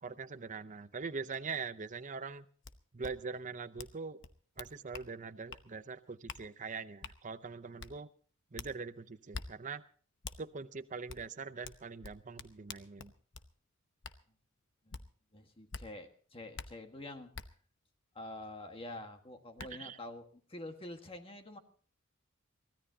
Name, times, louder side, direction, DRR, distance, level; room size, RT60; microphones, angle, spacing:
voice 1, 0.0-2.5 2.9-4.2 4.6-8.1 8.5-9.8 10.4-13.1 19.8-20.0, right 4 dB, 40° right, 11 dB, 0.7 m, -42 dB
sound 1, 2.6-2.7 3.0-3.1 3.8-3.9 4.2-5.1 5.5-5.6 6.3-6.4 7.0-7.2 7.8-7.9 8.6-8.7 9.3-9.5 10.2-10.4 11.1-11.2 11.6-13.5 14.0-14.2 14.9-15.0 15.7-15.8 16.5-16.7 17.3-17.5 19.0-19.1 19.6-19.7, left 5 dB, 60° left, 0.9 m, -45 dB
voice 2, 15.3-17.3 18.1-21.6, left 1 dB, 25° left, 5 dB, 1.6 m, -47 dB
24.0 x 16.5 x 2.8 m, 0.44 s
head